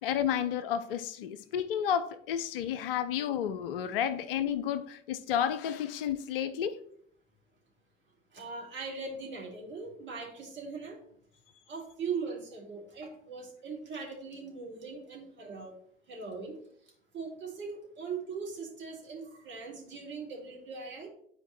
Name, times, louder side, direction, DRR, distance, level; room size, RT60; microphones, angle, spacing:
voice 1, 0.0-6.8, left 9 dB, 70° left, 0.6 m, -31 dB
voice 2, 8.3-11.0 11.7-15.7 16.1-16.6 17.1-21.1, right 5 dB, 40° right, 2.7 m, -40 dB
11.0 x 4.5 x 3.1 m
figure-of-eight pair, 55°, 29 cm